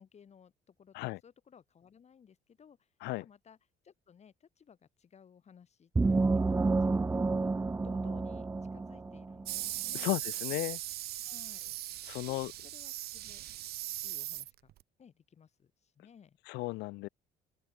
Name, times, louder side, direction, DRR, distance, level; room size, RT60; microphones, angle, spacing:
voice 1, 0.0-3.6 3.8-10.1 11.2-11.7 12.3-13.4 14.0-14.7 15.0-16.4, left 7 dB, 40° left, 5.5 m, -59 dB
sound 1, 6.0-9.5, right 3 dB, 15° right, 0.5 m, -29 dB
sound 2, 9.5-14.8, right 14 dB, 70° right, 1.3 m, -39 dB
voice 2, 9.9-10.8 12.1-12.5 16.5-17.1, left 22 dB, 90° left, 0.6 m, -34 dB
open air
cardioid pair, 110°, 17 cm